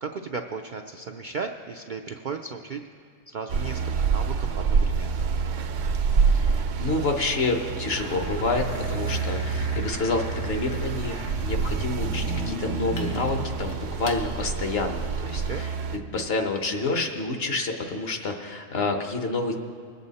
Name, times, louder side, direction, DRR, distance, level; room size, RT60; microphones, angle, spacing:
voice 1, 0.0-2.8 3.3-5.2 15.3-15.7, right 5 dB, 60° right, 3 dB, 0.5 m, -35 dB
sound 1, 3.5-16.0, right 5 dB, 75° right, 1.0 m, -27 dB
voice 2, 6.3-15.7 16.1-19.6, left 3 dB, 55° left, 4 dB, 1.2 m, -28 dB
sound 2, 7.9-14.2, left 1 dB, 75° left, 1.6 m, -36 dB
21.5 x 8.3 x 4.1 m, 2.5 s
omnidirectional pair, 1.3 m